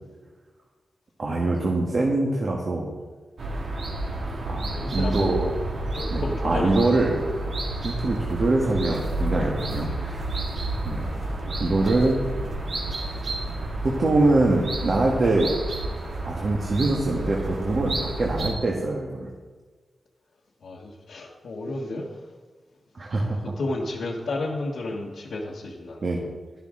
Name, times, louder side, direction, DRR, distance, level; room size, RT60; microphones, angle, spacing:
voice 1, 1.2-2.9 4.5-5.5 6.1-7.1 7.8-10.5 10.8-11.1 11.6-12.2 13.8-15.5 16.3-19.3 22.9-23.4 26.0-26.2, right 2 dB, 55° right, -1 dB, 1.5 m, -24 dB
sound 1, 3.4-18.5, right 2 dB, 70° right, 1.9 m, -30 dB
voice 2, 4.7-5.4 5.9-7.1 9.6-10.1 11.3-11.7 20.6-22.3 23.4-26.0, left 2 dB, 85° left, -5 dB, 1.3 m, -32 dB
12.0 x 11.5 x 3.8 m, 1.4 s
wide cardioid pair, 120°, 0 cm